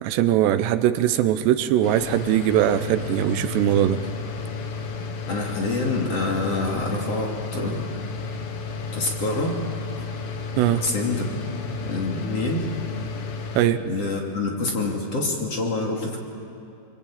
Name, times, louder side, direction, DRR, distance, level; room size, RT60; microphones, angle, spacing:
voice 1, 0.0-4.0 10.6-10.8 13.6-13.8, right 11 dB, 80° right, 11 dB, 3.0 m, -21 dB
sound 1, 1.8-13.6, left 4 dB, 80° left, 4.0 m, -32 dB
voice 2, 5.3-7.8 8.9-9.6 10.8-11.3 11.8-12.7 13.8-16.2, left 2 dB, 40° left, -1 dB, 3.4 m, -26 dB
26.0 x 24.0 x 8.8 m, 2.7 s
omnidirectional pair, 4.9 m